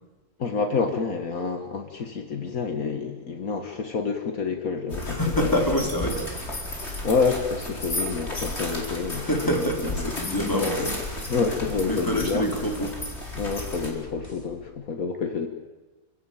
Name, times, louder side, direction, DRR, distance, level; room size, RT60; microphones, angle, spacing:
voice 1, 0.4-5.5 7.0-9.3 10.0-10.1 10.4-10.9 11.3-12.6 13.4-15.5, left 4 dB, 65° left, 5 dB, 2.0 m, -28 dB
sound 1, 4.9-13.9, left 1 dB, 45° left, 4.9 m, -33 dB
voice 2, 5.0-6.2 9.2-11.4 11.8-13.0, equal, 15° left, 1 dB, 3.8 m, -27 dB
sound 2, 7.8-14.7, right 1 dB, 30° right, 3.2 m, -48 dB
29.0 x 16.5 x 9.1 m, 1.2 s
omnidirectional pair, 1.6 m